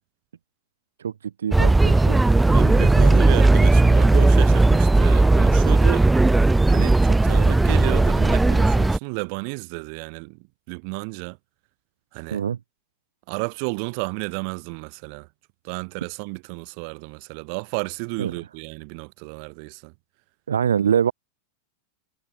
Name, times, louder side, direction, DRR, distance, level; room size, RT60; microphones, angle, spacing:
voice 1, 1.0-2.2 12.3-12.6 18.2-18.3 20.5-21.1, right 8 dB, 65° right, 1.3 m, -24 dB
sound 1, 1.5-9.0, right 2 dB, 5° right, 0.4 m, -16 dB
voice 2, 2.2-6.1 6.7-11.4 12.1-12.4 13.3-15.3 15.6-19.9, right 40 dB or more, 45° right, 7.9 m, -32 dB
figure-of-eight pair, 90°, 0 cm